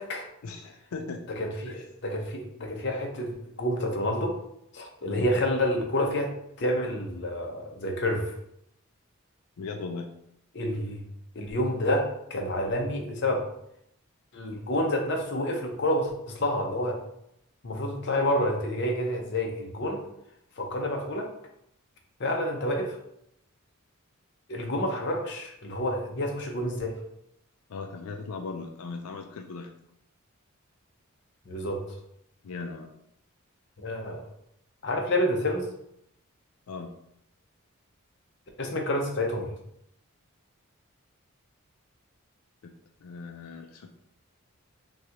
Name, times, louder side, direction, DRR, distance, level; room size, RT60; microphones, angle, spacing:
voice 1, 0.4-1.2 1.7-1.9 5.1-5.3 9.6-10.1 27.7-29.7 32.4-32.9 36.7-36.9 42.6-42.7 43.0-43.9, left 4 dB, 90° left, 4 dB, 0.4 m, -38 dB
voice 2, 1.4-4.3 4.7-6.3 6.6-8.3 10.5-11.0 11.3-13.4 14.3-17.0 17.6-20.0 20.6-21.3 22.2-23.0 24.5-26.9 31.5-31.8 33.8-34.2 34.8-35.7 38.6-39.5, left 1 dB, 50° left, 1 dB, 0.8 m, -28 dB
6.0 x 2.4 x 2.9 m, 0.75 s
head